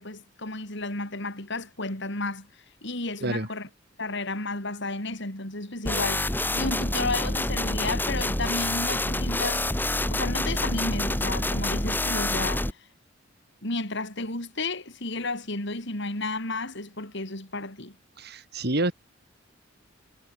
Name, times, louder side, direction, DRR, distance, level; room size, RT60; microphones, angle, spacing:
voice 1, 0.0-2.5 2.8-3.7 4.0-9.6 10.1-12.8 13.6-18.0, left 2 dB, 65° left, 7.2 m, -32 dB
sound 1, 5.9-12.7, left 1 dB, 10° left, 1.5 m, -27 dB
voice 2, 18.2-18.9, right 2 dB, 55° right, 3.4 m, -28 dB
head